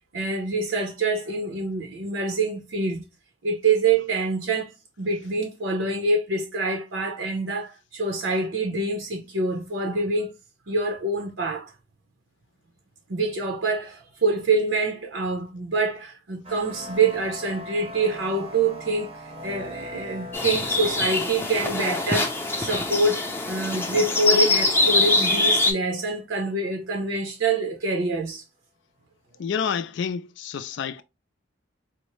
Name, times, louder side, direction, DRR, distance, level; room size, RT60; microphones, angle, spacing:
voice 1, 0.1-3.0 3.4-4.7 5.0-10.3 10.7-11.7 13.1-28.4, right 3 dB, 80° right, 0.7 m, -26 dB
sound 1, 16.4-25.1, left 1 dB, 30° right, 0.6 m, -41 dB
sound 2, 20.3-25.7, left 2 dB, 10° left, 0.5 m, -23 dB
voice 2, 29.4-31.0, left 7 dB, 65° left, 0.3 m, -29 dB
4.3 x 2.0 x 3.1 m
head